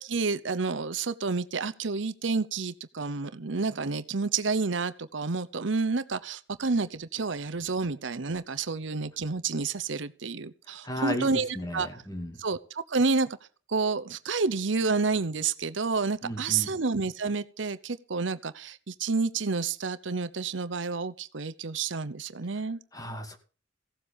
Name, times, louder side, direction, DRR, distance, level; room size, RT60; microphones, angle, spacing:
voice 1, 0.0-12.0 12.4-13.4 13.7-22.8, right 4 dB, 70° right, 13 dB, 0.9 m, -29 dB
voice 2, 10.8-12.4 16.2-16.7 22.9-23.4, equal, 20° left, 6 dB, 2.5 m, -35 dB
16.5 x 7.9 x 7.2 m, 0.39 s
head